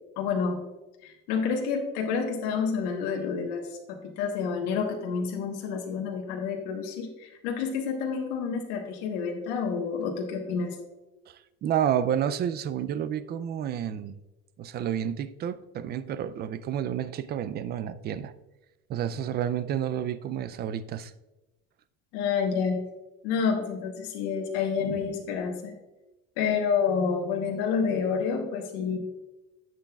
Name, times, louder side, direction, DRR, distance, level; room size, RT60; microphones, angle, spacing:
voice 1, 0.2-0.6 1.0-10.8 22.1-22.8 23.2-25.7 26.4-29.0, left 6 dB, 85° left, 2 dB, 1.2 m, -29 dB
voice 2, 11.3-14.2 14.6-18.3 18.9-21.1, right 9 dB, 30° right, 14 dB, 0.4 m, -30 dB
10.0 x 7.6 x 2.3 m, 1.0 s
cardioid pair, 135°, 33 cm